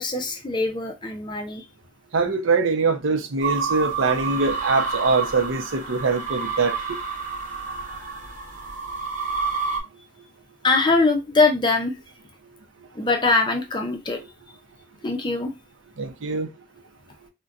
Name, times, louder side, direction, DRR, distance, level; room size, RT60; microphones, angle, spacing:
voice 1, 0.0-1.6 10.6-11.9 13.0-14.2 15.0-15.5, left 3 dB, 25° left, 0.5 m, -22 dB
voice 2, 2.1-6.7 16.0-16.5, right 4 dB, 80° right, 0.6 m, -23 dB
sound 1, 3.4-9.8, right 5 dB, 40° right, 0.8 m, -29 dB
4.0 x 2.2 x 2.4 m
head